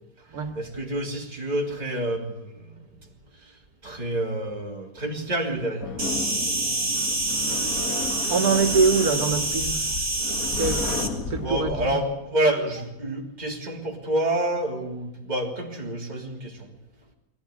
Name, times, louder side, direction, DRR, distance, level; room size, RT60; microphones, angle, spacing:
voice 1, 0.6-2.8 3.8-5.9 11.4-16.7, right 1 dB, 30° right, 3.4 m, -28 dB
sound 1, 5.8-12.0, left 4 dB, 70° left, 2.2 m, -33 dB
Insect, 6.0-11.1, right 2 dB, 45° right, 3.7 m, -27 dB
voice 2, 8.3-9.8 10.6-11.0 11.3-11.9, right 4 dB, 85° right, 2.2 m, -23 dB
22.5 x 17.0 x 9.9 m
omnidirectional pair, 1.6 m